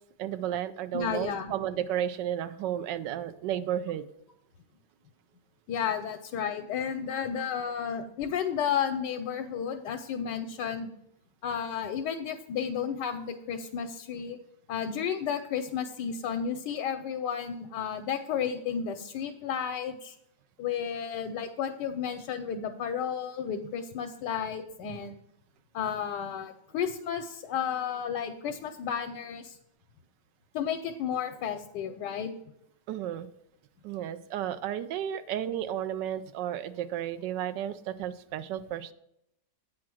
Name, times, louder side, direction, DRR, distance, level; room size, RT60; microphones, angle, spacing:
voice 1, 0.2-4.0 32.9-33.3 33.8-38.9, right 10 dB, 90° right, 11 dB, 1.3 m, -33 dB
voice 2, 0.9-1.5 5.7-10.9 11.4-14.4 14.7-20.1 20.6-25.2 25.7-29.6 30.5-32.3, left 7 dB, 80° left, 6 dB, 1.2 m, -32 dB
8.4 x 4.7 x 6.1 m, 0.80 s
omnidirectional pair, 1.8 m